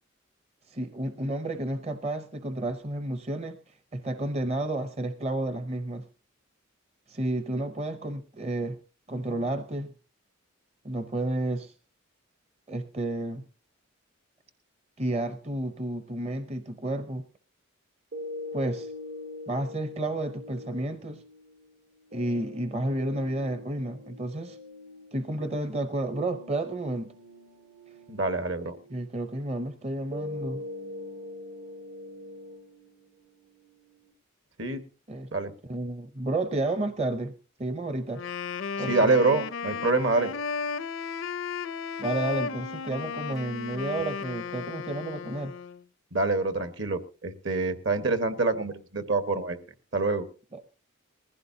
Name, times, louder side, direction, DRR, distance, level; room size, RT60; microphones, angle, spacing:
voice 1, 0.7-3.6 3.9-6.0 7.1-8.8 9.1-9.9 10.8-11.7 12.7-13.4 15.0-17.2 18.5-18.9 19.5-21.2 22.1-24.6 25.1-27.1 28.9-30.6 35.1-35.3 35.7-37.3 37.6-38.2 38.8-39.1 42.0-45.5 50.5-50.6, right 1 dB, 30° right, 9 dB, 0.7 m, -31 dB
sound 1, 18.1-34.1, left 2 dB, 85° right, 3.6 m, -43 dB
voice 2, 28.1-28.8 34.6-34.8 35.3-35.5 38.9-40.3 46.1-49.6 49.9-50.3, right 3 dB, 65° right, 9 dB, 1.4 m, -26 dB
Wind instrument woodwind instrument, 38.1-45.8, left 5 dB, 70° left, 0.6 m, -34 dB
20.0 x 15.5 x 2.7 m, 0.36 s
head